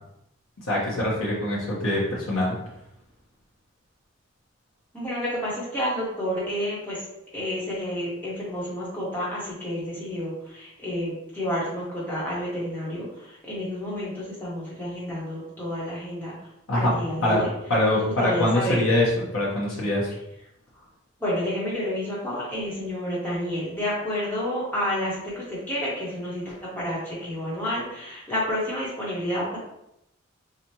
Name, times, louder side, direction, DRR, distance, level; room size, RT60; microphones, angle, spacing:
voice 1, 0.7-2.6 16.7-16.9 17.2-17.4 17.7-20.1, left 1 dB, 75° left, -7 dB, 1.0 m, -23 dB
voice 2, 4.9-7.0 7.3-16.3 16.7-17.5 17.9-18.8 21.2-29.6, equal, 10° left, -8 dB, 1.3 m, -30 dB
4.9 x 2.5 x 2.9 m, 0.83 s
head